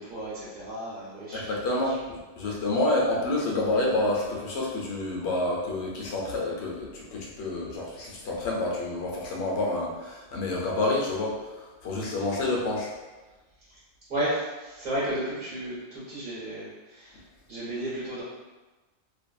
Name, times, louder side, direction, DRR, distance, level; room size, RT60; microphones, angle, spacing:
voice 1, 0.0-1.4 1.8-2.0 2.4-2.5 12.1-12.2 14.1-17.2 17.5-18.2, right 1 dB, 55° right, -11 dB, 1.1 m, -33 dB
voice 2, 1.3-12.9, left 2 dB, 85° left, -3 dB, 0.9 m, -28 dB
2.6 x 2.5 x 2.3 m, 1.2 s
omnidirectional pair, 1.1 m